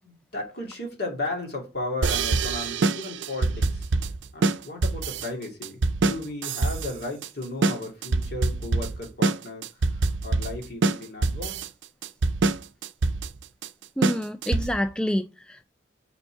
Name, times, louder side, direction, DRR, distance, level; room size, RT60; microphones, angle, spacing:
voice 1, 0.0-3.9 4.3-11.7, left 2 dB, 60° left, 2.5 m, -35 dB
sound 1, 2.0-14.9, right 3 dB, 85° right, 0.5 m, -25 dB
voice 2, 14.0-15.6, equal, 5° left, 0.3 m, -28 dB
5.4 x 4.4 x 5.8 m
head